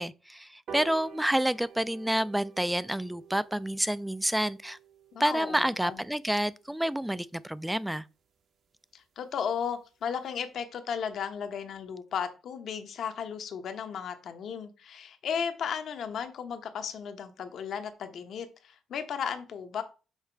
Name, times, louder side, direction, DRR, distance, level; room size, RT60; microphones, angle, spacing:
voice 1, 0.0-4.8 5.2-8.0, right 1 dB, 5° right, 0.3 m, -29 dB
sound 1, 0.7-7.4 7.8-7.9 8.3-8.4 8.6-8.7 9.0-9.1 9.4-9.7 10.1-10.2, right 7 dB, 65° right, 1.1 m, -49 dB
voice 2, 5.1-6.0 8.9-19.8, left 7 dB, 65° left, 0.9 m, -35 dB
5.7 x 4.1 x 4.5 m
cardioid pair, 90°, 0 cm